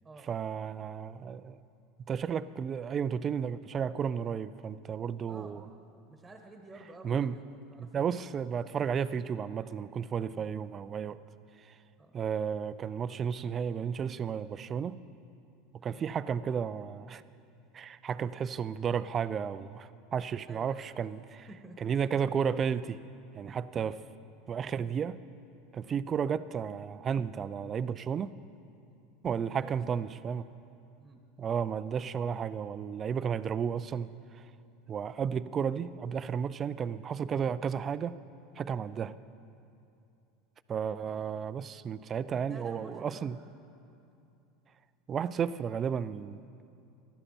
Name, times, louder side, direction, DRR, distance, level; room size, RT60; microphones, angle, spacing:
voice 1, 0.3-1.6 2.1-5.6 7.0-7.4 7.8-11.2 12.1-15.0 15.8-17.2 17.7-21.5 21.8-23.0 23.3-24.0 24.5-25.2 25.7-28.4 29.2-30.5 31.4-34.1 34.9-38.2 38.6-39.1 40.7-43.4 45.1-46.4, right 7 dB, 35° right, 15 dB, 0.4 m, -33 dB
voice 2, 5.3-5.6 6.0-8.1 10.3-10.6 12.0-12.1 15.9-16.1 20.4-20.9 21.5-21.8 23.8-24.0 28.8-29.0 29.6-30.0 31.0-31.2 41.0-41.3 42.3-43.3, right 2 dB, 10° right, 3 dB, 1.5 m, -51 dB
15.5 x 12.5 x 4.4 m, 2.6 s
hypercardioid pair, 95°, 0 cm